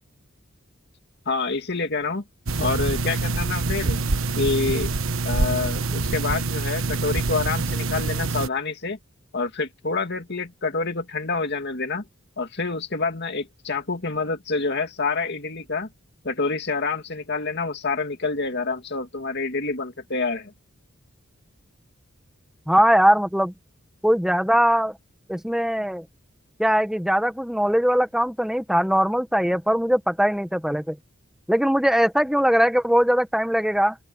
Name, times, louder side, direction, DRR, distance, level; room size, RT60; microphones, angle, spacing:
voice 1, 1.3-2.2 2.6-4.0 4.4-4.9 5.2-9.0 9.3-12.0 12.4-15.9 16.2-20.5, left 4 dB, 55° left, 2.4 m, -27 dB
sound 1, 2.5-8.5, right 3 dB, 75° right, 1.3 m, -25 dB
voice 2, 22.7-23.5 24.0-25.0 25.3-26.0 26.6-31.0 31.5-34.0, equal, ahead, 1.3 m, -20 dB
open air
head